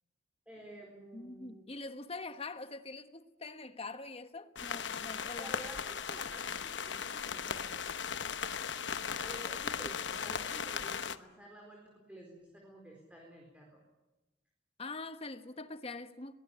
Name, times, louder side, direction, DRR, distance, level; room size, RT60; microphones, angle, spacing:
voice 1, 0.5-1.6 5.4-8.2 9.2-13.8, right 1 dB, 5° right, 4.3 m, -51 dB
voice 2, 1.1-5.5 14.8-16.3, left 3 dB, 30° left, 1.3 m, -44 dB
sound 1, 4.5-11.2, left 6 dB, 75° left, 1.0 m, -37 dB
22.5 x 18.5 x 9.9 m
head